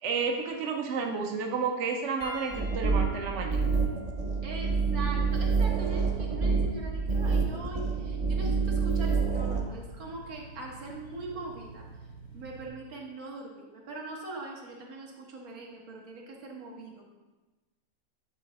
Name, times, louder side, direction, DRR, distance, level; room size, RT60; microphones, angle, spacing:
voice 1, 0.0-3.6, right 5 dB, 60° right, 2 dB, 0.9 m, -31 dB
Piano, 2.2-6.9 7.8-8.0 9.9-10.0, left 1 dB, 90° left, 1.7 m, -48 dB
sound 1, 2.5-9.6, right 4 dB, 40° right, 0.6 m, -27 dB
voice 2, 4.4-11.9 12.3-17.0, right 2 dB, 75° right, -1 dB, 1.7 m, -41 dB
sound 2, 4.8-12.7, right 4 dB, 55° left, 0.9 m, -48 dB
8.6 x 3.8 x 4.1 m, 1.2 s
omnidirectional pair, 1.5 m